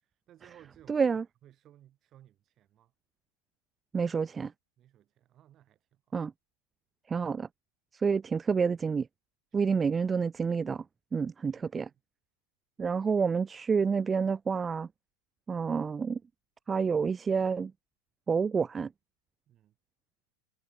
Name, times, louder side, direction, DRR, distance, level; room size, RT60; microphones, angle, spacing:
voice 1, 0.0-2.9 4.8-6.2 9.6-9.8 11.6-11.7 19.5-19.8, right 12 dB, 35° right, 7.7 m, -59 dB
voice 2, 0.9-1.2 3.9-4.5 6.1-6.3 7.1-7.5 7.9-9.1 9.5-10.8 11.1-11.9 12.8-14.9 15.5-16.2 16.7-17.7 18.3-18.9, right 5 dB, 20° right, 0.9 m, -28 dB
hypercardioid pair, 95°, 0 cm